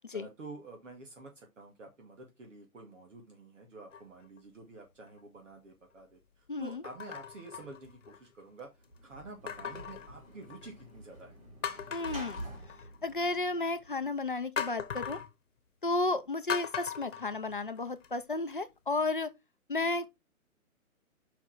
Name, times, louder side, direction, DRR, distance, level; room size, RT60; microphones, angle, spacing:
voice 1, 0.1-8.7 9.0-11.4, right 3 dB, 55° right, 2.2 m, -49 dB
sound 1, 3.9-4.4 5.1-5.2 6.8-8.3 9.5-10.8 11.2-11.3 11.6-13.1 14.6-15.3 16.5-18.1 18.5-18.6, left 8 dB, 55° left, 1.2 m, -39 dB
voice 2, 6.5-6.8 11.9-12.4 13.0-15.2 15.8-19.3 19.7-20.1, left 3 dB, 35° left, 0.6 m, -33 dB
Sliding door / Slam, 8.8-14.2, right 1 dB, 25° right, 2.9 m, -48 dB
5.8 x 5.0 x 5.8 m
hypercardioid pair, 180°, 44 cm